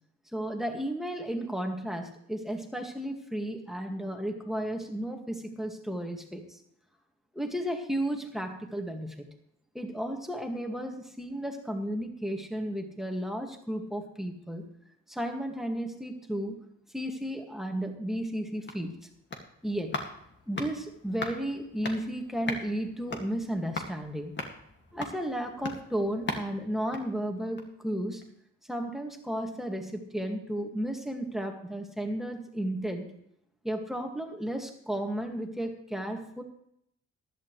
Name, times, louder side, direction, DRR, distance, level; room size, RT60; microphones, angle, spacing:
voice 1, 0.3-6.6 7.3-9.3 9.7-14.6 15.1-16.6 16.9-19.0 19.6-19.9 20.5-24.3 24.9-28.2 28.7-33.1 33.6-36.4, right 1 dB, ahead, 2 dB, 2.1 m, -33 dB
sound 1, 18.3-27.9 28.2-28.3, left 3 dB, 40° left, 2.2 m, -40 dB
15.0 x 11.5 x 3.3 m, 0.73 s
cardioid pair, 90°, 30 cm